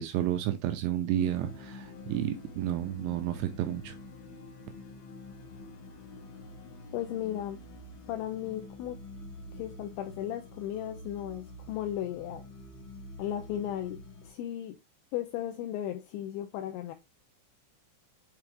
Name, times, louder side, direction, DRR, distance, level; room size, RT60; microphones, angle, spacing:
voice 1, 0.0-3.9, right 11 dB, 85° right, 2.7 m, -31 dB
sound 1, 1.1-14.3, left 2 dB, 75° left, 2.0 m, -47 dB
voice 2, 6.9-7.6 8.1-9.0 9.5-12.4 13.2-14.8 15.1-16.9, left 11 dB, 90° left, 2.6 m, -35 dB
8.2 x 3.5 x 3.4 m
omnidirectional pair, 5.9 m